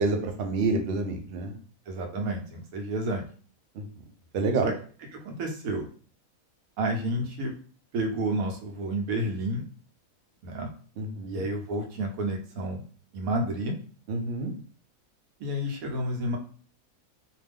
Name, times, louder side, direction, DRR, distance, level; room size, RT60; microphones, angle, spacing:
voice 1, 0.0-1.6 3.8-3.9 4.3-4.7 11.0-11.4 14.1-14.5, right 3 dB, 65° right, 4 dB, 0.6 m, -28 dB
voice 2, 1.9-3.2 4.6-4.7 5.1-5.9 6.8-7.5 7.9-9.6 10.4-10.7 11.3-12.8 13.1-13.8 15.4-16.4, right 1 dB, 85° right, 3 dB, 1.1 m, -30 dB
2.5 x 2.3 x 3.4 m, 0.42 s
omnidirectional pair, 1.5 m